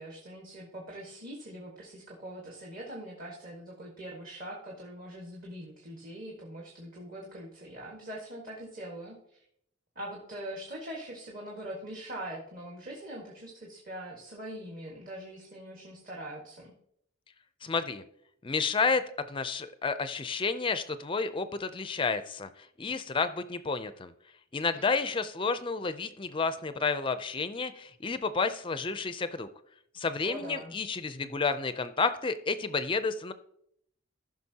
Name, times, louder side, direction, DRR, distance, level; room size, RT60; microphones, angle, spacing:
voice 1, 0.0-9.4 9.9-16.7 24.7-25.2 30.2-30.7, right 1 dB, 40° right, -2 dB, 1.6 m, -43 dB
voice 2, 17.6-18.0 18.4-24.1 24.5-29.5 29.9-33.3, left 4 dB, 25° left, 11 dB, 0.4 m, -31 dB
15.0 x 5.9 x 2.8 m, 0.71 s
head